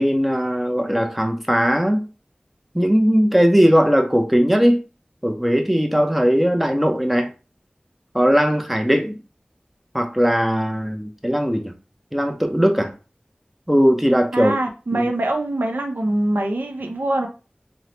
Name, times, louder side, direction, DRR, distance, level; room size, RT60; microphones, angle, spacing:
voice 1, 0.0-2.0 2.7-4.8 5.2-7.3 8.1-9.1 9.9-11.7 12.1-12.9 13.7-14.5 14.9-15.1, equal, 5° right, 0.5 m, -18 dB
voice 2, 14.3-17.3, right 1 dB, 85° right, 0.5 m, -23 dB
2.9 x 2.0 x 2.9 m
wide cardioid pair, 40°, 3 cm